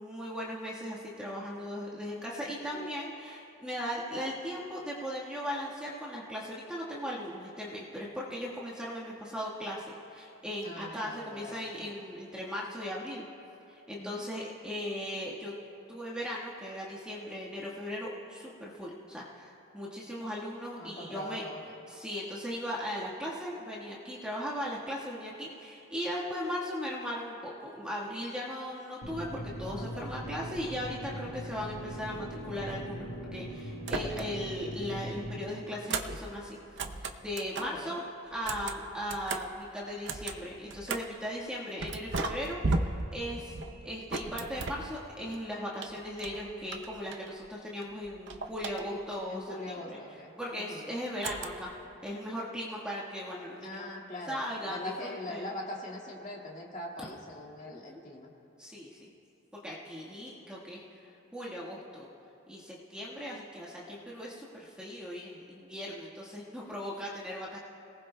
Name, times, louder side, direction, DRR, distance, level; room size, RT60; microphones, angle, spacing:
voice 1, 0.0-13.2 13.7-15.5 15.9-21.4 21.9-36.6 37.2-38.0 38.3-43.6 43.8-50.0 50.4-51.7 52.0-53.9 54.3-55.5 57.7-58.0 58.6-59.1 59.6-60.9 61.3-62.1 62.5-67.6, equal, 5° right, -6 dB, 1.4 m, -38 dB
voice 2, 2.7-3.1 10.6-11.8 14.0-14.2 20.8-21.7 29.7-30.1 37.5-38.0 41.2-41.3 48.8-49.0 49.3-50.9 51.2-51.3 53.6-54.4 54.7-58.3, left 1 dB, 35° left, -2 dB, 2.0 m, -42 dB
sound 1, 29.0-35.4, equal, 60° left, 1.9 m, -40 dB
sound 2, 33.8-34.6 34.9-37.8 38.3-41.2 41.8-45.4 45.8-47.5 47.8-49.2 51.2-51.8, right 3 dB, 55° right, 0.7 m, -37 dB
29.5 x 18.5 x 2.2 m, 2.8 s
head